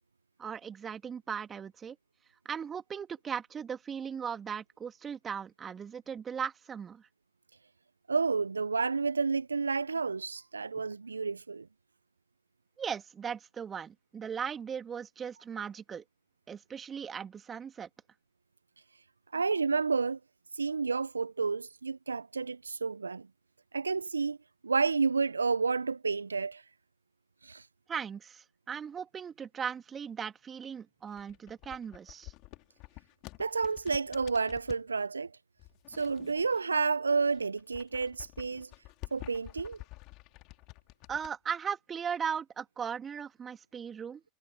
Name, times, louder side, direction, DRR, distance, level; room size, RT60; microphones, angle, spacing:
voice 1, 0.4-2.0 2.5-7.0 12.8-16.0 16.5-17.9 27.9-32.3 41.1-44.2, right 7 dB, 30° right, 2.1 m, -38 dB
voice 2, 8.1-11.7 19.3-20.2 20.5-23.3 23.7-24.4 24.6-26.6 27.4-27.7 33.4-35.3 35.9-38.7 39.1-39.8, right 4 dB, 85° right, 0.5 m, -30 dB
sound 1, 31.0-34.9 35.6-36.9 37.2-41.3, left 22 dB, 50° left, 2.9 m, -49 dB
figure-of-eight pair, 75°, 0 cm